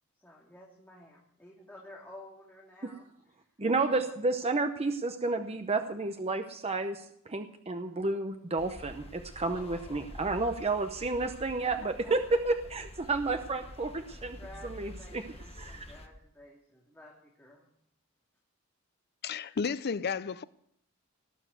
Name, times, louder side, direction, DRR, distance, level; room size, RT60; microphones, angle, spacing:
voice 1, 0.2-3.1 9.5-10.4 12.0-12.4 14.1-17.7, left 1 dB, 10° left, 2.6 m, -52 dB
voice 2, 3.6-14.4 14.6-15.2 15.6-15.8, right 3 dB, 30° right, 0.8 m, -31 dB
sound 1, 8.6-16.1, left 1 dB, 30° left, 1.1 m, -48 dB
voice 3, 19.2-20.4, left 5 dB, 50° left, 0.5 m, -32 dB
18.5 x 7.2 x 7.9 m
head